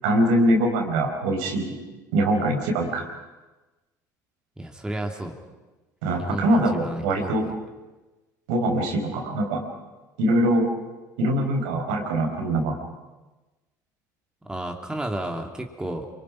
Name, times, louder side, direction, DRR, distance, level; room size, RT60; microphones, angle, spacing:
voice 1, 0.0-1.8 2.1-3.1 6.0-7.5 8.5-9.6 10.2-10.7 11.2-12.8, right 1 dB, 70° right, 2 dB, 4.6 m, -23 dB
voice 2, 4.6-5.4 6.2-7.5 14.4-16.1, right 1 dB, 10° right, 2 dB, 3.0 m, -32 dB
28.0 x 24.0 x 6.0 m, 1.1 s
hypercardioid pair, 65°, 10 cm